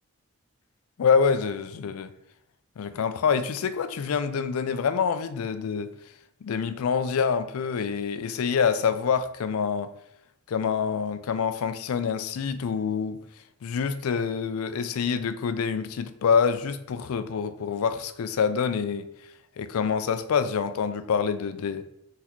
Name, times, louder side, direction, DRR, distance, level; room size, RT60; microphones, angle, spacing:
voice 1, 1.0-2.1 2.8-5.9 6.4-9.9 10.5-13.2 13.6-19.1 19.6-21.9, left 6 dB, 90° left, 0.4 m, -26 dB
4.0 x 4.0 x 3.0 m
head